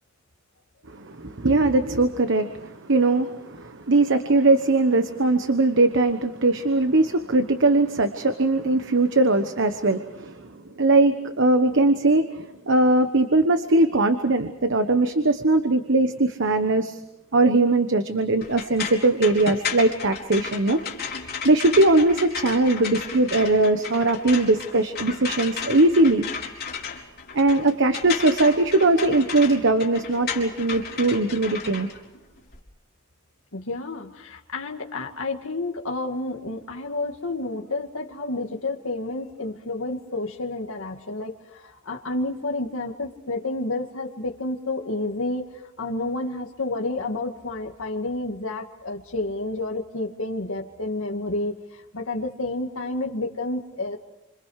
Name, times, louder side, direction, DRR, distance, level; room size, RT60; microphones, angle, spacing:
voice 1, 0.9-10.5 10.8-17.0 17.3-20.8 21.4-26.2 27.3-31.9, right 2 dB, 65° right, 9 dB, 1.2 m, -20 dB
sound 1, 18.4-32.6, left 6 dB, 50° left, 4.0 m, -34 dB
voice 2, 33.5-45.4 45.8-54.0, left 2 dB, 75° left, 2 dB, 2.1 m, -30 dB
29.0 x 26.5 x 4.9 m, 0.90 s
head